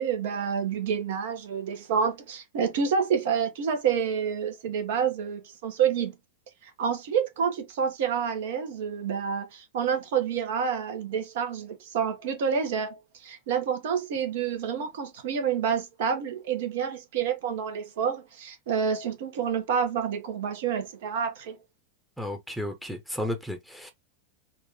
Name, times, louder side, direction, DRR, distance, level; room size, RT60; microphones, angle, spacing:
voice 1, 0.0-6.1 6.6-21.6, right 7 dB, 55° right, 1.1 m, -28 dB
voice 2, 22.2-23.9, left 1 dB, ahead, 0.9 m, -33 dB
3.9 x 2.5 x 3.5 m
figure-of-eight pair, 90°, 0 cm